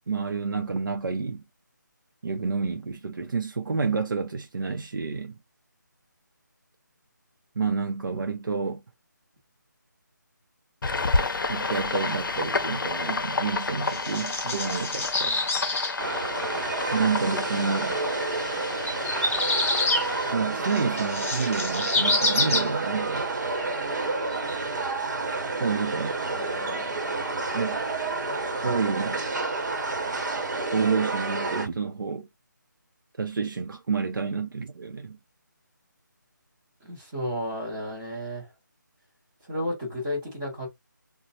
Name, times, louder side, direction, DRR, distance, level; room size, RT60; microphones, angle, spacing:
voice 1, 0.1-1.4 2.2-5.4 7.6-8.8 11.5-15.4 16.9-18.0 20.3-23.3 25.6-26.2 27.5-27.8 28.6-29.2 30.7-32.3 33.2-35.2, right 5 dB, 80° right, 0.5 m, -29 dB
sound 1, 10.8-20.3, left 3 dB, 80° left, 0.5 m, -30 dB
sound 2, 13.4-15.9 17.5-17.6 18.9-20.1 20.6-22.7 23.6-23.7 24.2-24.4, left 2 dB, 40° left, 0.7 m, -27 dB
sound 3, 16.0-31.7, right 3 dB, 60° right, 0.9 m, -30 dB
voice 2, 36.8-38.5 39.4-40.7, equal, 5° right, 0.6 m, -32 dB
3.0 x 2.0 x 2.6 m
figure-of-eight pair, 175°, 11 cm